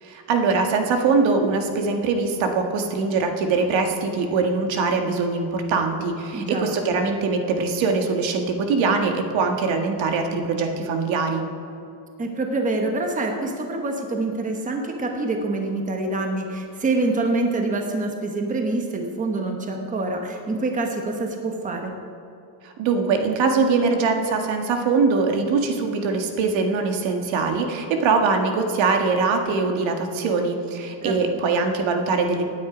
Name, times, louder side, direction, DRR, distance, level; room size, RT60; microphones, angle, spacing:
voice 1, 0.0-11.4 22.6-32.4, right 4 dB, 65° right, 4 dB, 1.7 m, -22 dB
voice 2, 6.3-6.7 12.2-21.9 31.0-31.5, right 2 dB, 15° right, 3 dB, 1.2 m, -26 dB
18.0 x 9.6 x 5.1 m, 2.6 s
cardioid pair, 155°, 48 cm